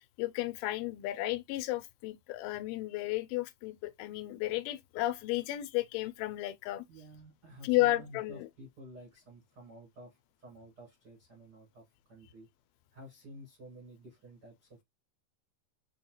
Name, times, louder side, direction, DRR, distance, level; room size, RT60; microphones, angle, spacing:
voice 1, 0.0-6.9 7.6-8.5, left 17 dB, 90° left, 2.4 m, -33 dB
voice 2, 6.9-12.5 12.9-14.8, equal, 80° right, 0.8 m, -52 dB
5.8 x 2.3 x 2.9 m
omnidirectional pair, 4.2 m